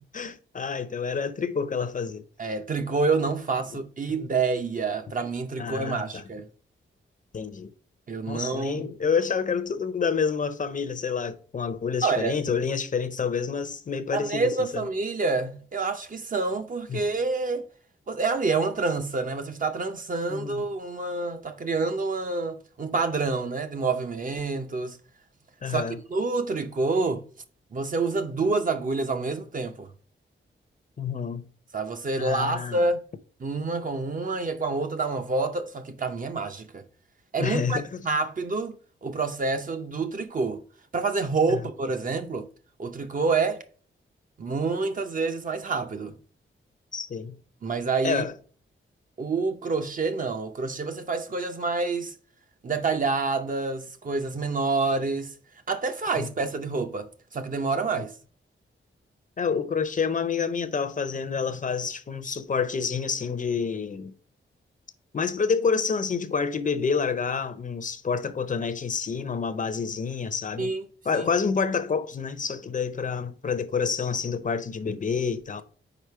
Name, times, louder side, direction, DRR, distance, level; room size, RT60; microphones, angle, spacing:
voice 1, 0.1-2.2 5.6-6.2 7.3-7.7 8.3-14.8 16.9-17.0 20.3-20.6 25.6-26.0 31.0-31.5 32.2-32.8 37.4-38.0 41.5-41.6 46.9-47.4 48.0-48.3 56.2-56.3 58.0-58.1 59.4-64.1 65.1-70.7 71.1-75.6, left 5 dB, 40° left, 0.6 m, -28 dB
voice 2, 2.4-6.5 8.1-8.8 12.0-12.4 14.1-17.7 18.1-25.0 25.7-25.8 26.1-27.2 27.7-29.9 31.7-33.0 33.4-36.8 37.3-38.8 39.0-40.6 40.9-42.5 42.8-43.6 44.4-46.2 47.6-48.2 49.2-52.1 52.6-55.3 55.7-58.1 70.6-71.3, right 3 dB, 40° right, 0.6 m, -27 dB
4.9 x 4.9 x 4.6 m
wide cardioid pair, 170°, 21 cm